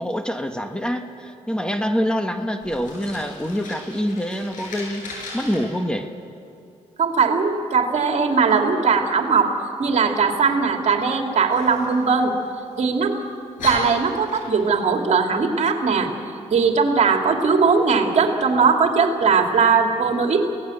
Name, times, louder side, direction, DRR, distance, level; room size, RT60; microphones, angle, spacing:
voice 1, 0.0-5.1 5.3-6.1, equal, 5° left, 6 dB, 1.5 m, -25 dB
Fire, 2.6-5.6 11.5-12.7 13.2-13.3 13.6-14.8, left 2 dB, 85° left, 7.8 m, -36 dB
voice 2, 7.0-9.5 9.8-12.3 12.8-13.2 13.6-16.1 16.5-20.5, right 5 dB, 60° right, 3 dB, 2.7 m, -19 dB
27.5 x 18.0 x 7.9 m, 2.7 s
cardioid pair, 80°, 13 cm